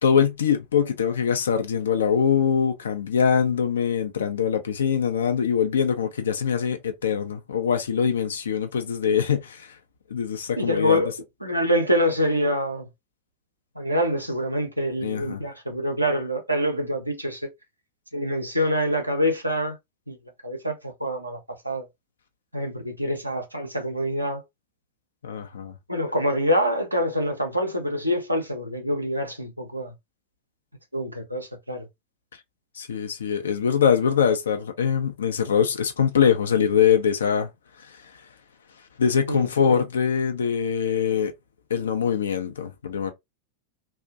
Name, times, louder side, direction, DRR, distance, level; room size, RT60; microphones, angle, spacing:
voice 1, 0.0-9.7 10.1-11.0 15.0-15.4 25.2-25.7 32.8-37.5 39.0-41.3 41.7-43.1, left 7 dB, 65° left, 0.4 m, -23 dB
voice 2, 10.6-11.1 11.4-12.9 13.8-17.4 18.1-19.8 20.1-20.2 20.4-21.4 21.6-21.9 22.5-24.4 25.9-29.9 30.9-31.9 39.3-39.8, equal, 90° right, 0.5 m, -25 dB
2.4 x 2.1 x 2.5 m
figure-of-eight pair, 90°, 0 cm